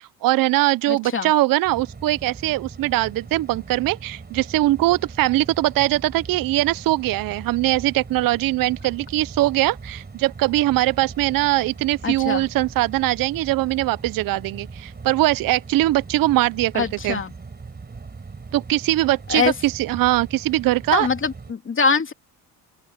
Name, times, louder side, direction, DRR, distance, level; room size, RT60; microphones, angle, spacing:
voice 1, 0.2-17.2 18.5-21.1, right 17 dB, 65° right, 0.6 m, -21 dB
voice 2, 0.9-1.3 12.0-12.4 16.7-17.3 19.3-19.5 20.9-22.1, left 5 dB, 35° left, 2.9 m, -23 dB
sound 1, 1.6-21.5, right 4 dB, 25° right, 5.7 m, -40 dB
open air
cardioid pair, 110°, 36 cm